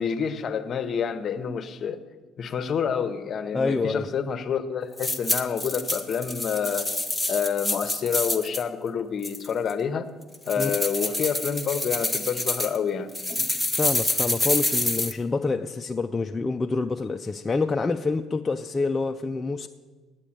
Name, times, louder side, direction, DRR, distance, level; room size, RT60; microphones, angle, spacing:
voice 1, 0.0-2.0 2.4-7.0 7.3-10.1 10.4-13.6, left 7 dB, 40° left, 11 dB, 0.8 m, -28 dB
voice 2, 3.5-4.1 10.6-10.7 13.7-19.7, left 3 dB, 20° left, 5 dB, 0.4 m, -27 dB
sound 1, 5.0-8.6 9.2-9.7 10.3-12.8 13.1-15.1, left 1 dB, ahead, 0.9 m, -27 dB
9.9 x 9.0 x 8.7 m, 1.4 s
cardioid pair, 140°, 0 cm